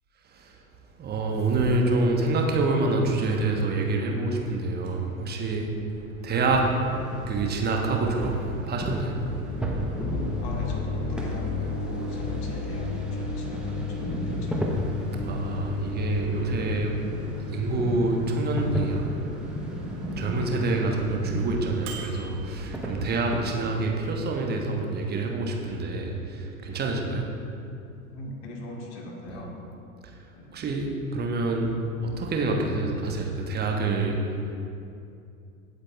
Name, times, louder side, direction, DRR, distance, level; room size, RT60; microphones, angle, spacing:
voice 1, 1.0-5.7 6.2-6.6 7.3-8.3 8.7-9.2 13.8-13.9 15.1-17.1 17.5-19.0 20.2-27.3 30.0-30.2 30.5-31.8 32.0-34.2, right 2 dB, 20° right, 1 dB, 1.2 m, -27 dB
Microwave oven, 4.7-23.4, equal, 40° right, 2.0 m, -41 dB
sound 1, 6.3-23.7, right 1 dB, ahead, 0.9 m, -35 dB
sound 2, 9.2-17.1, left 3 dB, 30° left, 1.7 m, -32 dB
voice 2, 10.4-15.2 28.1-29.5 30.4-30.6, left 2 dB, 50° left, 0 dB, 1.8 m, -41 dB
16.5 x 8.0 x 2.4 m, 2.6 s
figure-of-eight pair, 85°, 43 cm